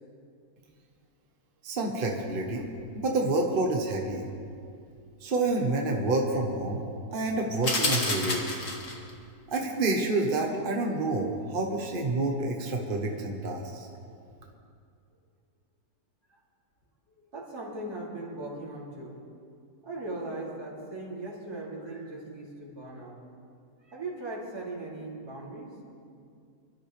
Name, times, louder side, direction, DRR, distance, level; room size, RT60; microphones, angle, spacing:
voice 1, 1.6-2.7 2.9-4.3 5.2-6.8 7.1-8.4 9.5-13.9, right 2 dB, 35° right, 1 dB, 1.4 m, -28 dB
sound 1, 7.6-9.1, left 2 dB, 55° left, 2.1 m, -29 dB
voice 2, 17.3-19.2 19.8-23.1 23.9-25.8, right 2 dB, 80° right, -5 dB, 3.7 m, -38 dB
26.0 x 12.5 x 3.5 m, 2.3 s
omnidirectional pair, 1.6 m